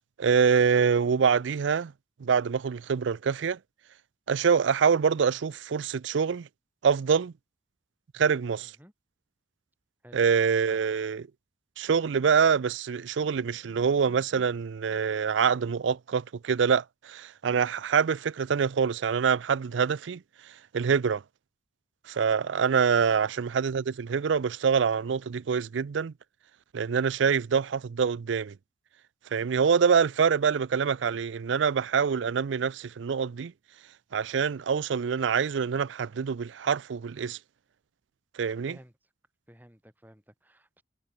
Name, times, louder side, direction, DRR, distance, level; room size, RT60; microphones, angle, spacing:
voice 1, 0.2-1.9 2.2-3.6 4.3-6.5 6.8-7.3 8.1-8.7 10.1-11.2 11.8-20.2 20.7-21.2 22.1-26.1 26.7-28.5 29.3-33.5 34.1-37.4 38.4-38.8, right 6 dB, 85° right, 0.4 m, -25 dB
voice 2, 8.6-8.9 10.0-10.2 10.7-10.8 38.7-38.9 39.5-40.8, equal, 10° right, 4.6 m, -53 dB
head